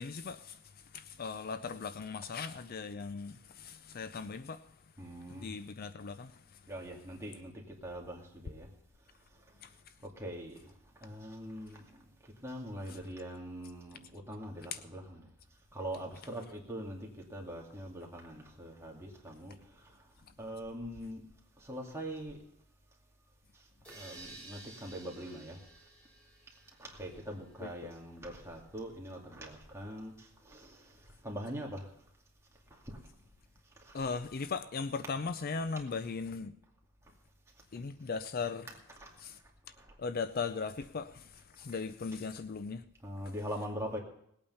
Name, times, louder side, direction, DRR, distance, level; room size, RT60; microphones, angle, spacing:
voice 1, 0.0-6.7 9.6-10.0 14.7-14.8 20.3-20.4 27.6-27.7 33.9-36.6 37.7-38.7 39.2-39.4 40.0-42.8, left 5 dB, 45° left, 0.5 m, -39 dB
voice 2, 5.0-5.5 6.7-8.7 9.3-9.7 10.0-15.2 15.7-21.2 21.6-22.4 23.5-25.6 26.8-31.9 32.7-33.0 33.8-34.1 39.0-39.1 39.7-40.0 43.0-44.0, equal, 15° right, 2.3 m, -43 dB
sound 1, 23.8-27.6, right 2 dB, 5° left, 4.1 m, -53 dB
19.0 x 8.7 x 5.6 m
head